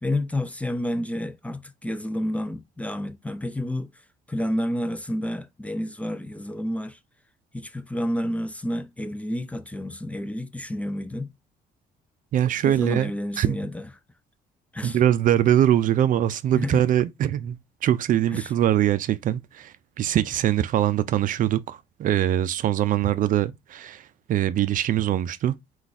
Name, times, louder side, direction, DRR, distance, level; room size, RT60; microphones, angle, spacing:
voice 1, 0.0-3.9 4.3-7.0 7.5-11.3 12.6-13.9 14.7-15.0 16.5-16.8 18.3-18.5, left 1 dB, 10° left, 0.5 m, -30 dB
voice 2, 12.3-13.1 13.4-13.6 14.8-17.6 17.8-25.5, right 11 dB, 50° right, 0.4 m, -22 dB
4.6 x 2.4 x 4.1 m
cardioid pair, 110°, 17 cm